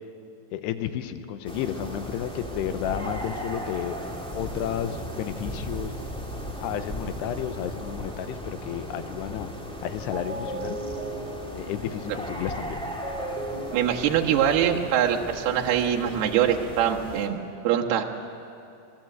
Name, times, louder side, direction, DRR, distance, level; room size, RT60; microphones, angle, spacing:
voice 1, 0.5-4.0 4.4-5.9 6.6-9.5 9.8-10.8 11.6-12.9, left 10 dB, 90° left, 10 dB, 3.0 m, -32 dB
sound 1, 1.4-17.3, equal, 5° left, 0.8 m, -37 dB
sound 2, 9.7-9.8 10.1-15.2, right 2 dB, 15° right, 2.7 m, -37 dB
voice 2, 13.7-17.4 17.6-18.0, right 9 dB, 75° right, 0 dB, 3.2 m, -23 dB
25.0 x 20.0 x 7.9 m, 2.7 s
omnidirectional pair, 4.8 m